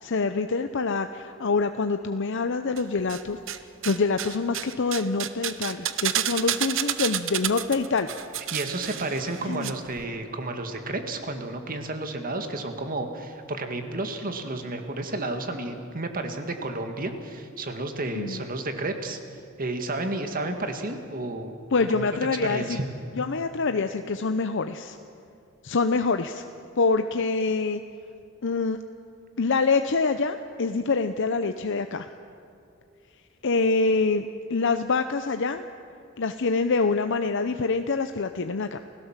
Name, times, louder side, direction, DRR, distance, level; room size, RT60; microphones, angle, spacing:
voice 1, 0.0-3.6 3.8-8.1 9.4-9.7 18.1-18.4 21.7-22.8 23.2-25.0 25.6-26.4 26.8-27.8 28.4-28.8 29.4-32.1 33.4-35.6 36.2-38.8, left 4 dB, 60° left, 8 dB, 0.7 m, -25 dB
sound 1, 2.8-3.6 3.8-9.7 10.0-10.1, right 11 dB, 65° right, 0.9 m, -30 dB
voice 2, 8.5-19.2 19.6-21.6 21.9-22.1 22.4-22.8, right 2 dB, 45° right, 6 dB, 1.9 m, -31 dB
29.5 x 16.5 x 7.4 m, 2.4 s
head